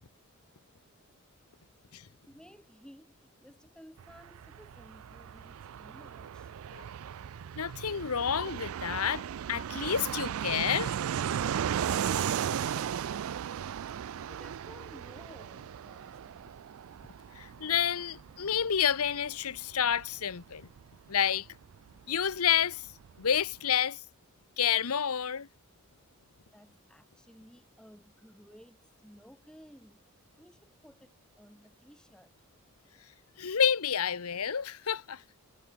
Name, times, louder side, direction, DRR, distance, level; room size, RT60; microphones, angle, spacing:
voice 1, 2.1-6.5 11.6-13.1 14.3-16.6 26.5-30.1 30.4-32.3, equal, 5° left, 5.7 m, -56 dB
Fixed-wing aircraft airplane, 4.0-22.4 22.6-22.7 22.9-23.6, right 9 dB, 75° right, 0.4 m, -36 dB
voice 2, 7.6-9.2 9.5-10.9 17.3-20.7 21.1-21.5 22.1-22.9 23.2-24.0 24.6-25.5 33.4-35.2, left 8 dB, 90° left, 0.9 m, -29 dB
head